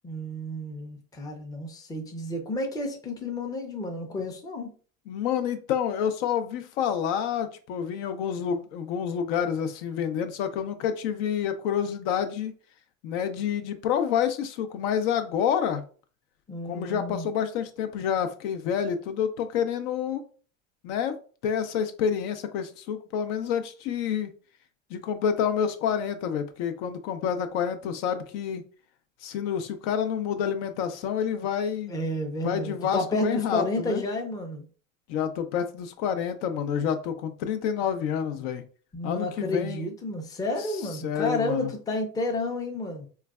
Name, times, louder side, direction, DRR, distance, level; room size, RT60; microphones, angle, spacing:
voice 1, 0.0-4.7 16.5-17.3 31.9-34.6 38.9-43.1, left 1 dB, 10° left, 3 dB, 0.5 m, -31 dB
voice 2, 5.1-12.5 13.0-15.8 16.6-20.2 20.8-21.2 21.4-24.3 24.9-28.6 29.2-32.1 32.4-34.0 35.1-38.6 39.0-39.9 41.0-41.7, left 8 dB, 60° left, 9 dB, 0.5 m, -28 dB
3.8 x 2.2 x 2.3 m, 0.40 s
hypercardioid pair, 100°, 41 cm